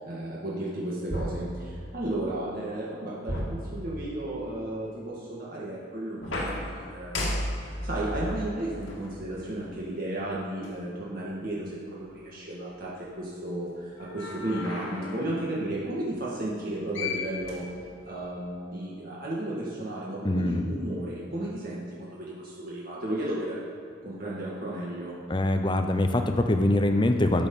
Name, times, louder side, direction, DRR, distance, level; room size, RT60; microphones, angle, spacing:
voice 1, 0.0-12.9 13.2-17.6 18.0-23.6 24.0-25.2, right 1 dB, 45° right, -6 dB, 1.8 m, -34 dB
sound 1, 1.1-2.2 3.3-4.4 6.2-9.8 10.6-10.7 14.0-15.3 16.6-16.7 16.9-18.2, left 1 dB, 80° left, 2.0 m, -35 dB
voice 2, 20.2-20.7 25.3-27.5, left 1 dB, 25° left, 6 dB, 0.7 m, -24 dB
12.5 x 6.9 x 5.4 m, 2.6 s
head